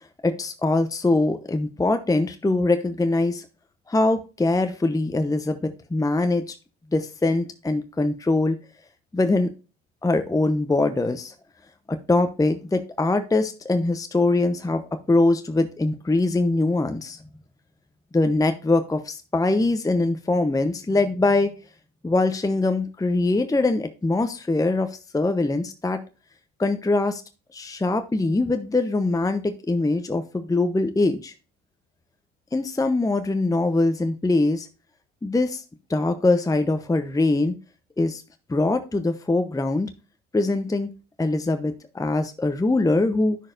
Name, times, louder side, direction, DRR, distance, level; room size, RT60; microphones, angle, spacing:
voice 1, 0.2-3.5 3.9-6.5 6.9-8.6 9.1-9.5 10.0-11.3 11.9-17.2 18.1-21.5 22.0-26.0 26.6-27.2 27.5-31.3 32.5-34.7 35.2-35.6 35.9-37.5 38.0-38.2 38.5-39.9 40.3-40.9 41.2-43.4, left 2 dB, 10° left, 8 dB, 0.8 m, -22 dB
10.0 x 6.2 x 2.6 m, 0.33 s
hypercardioid pair, 65°, 34 cm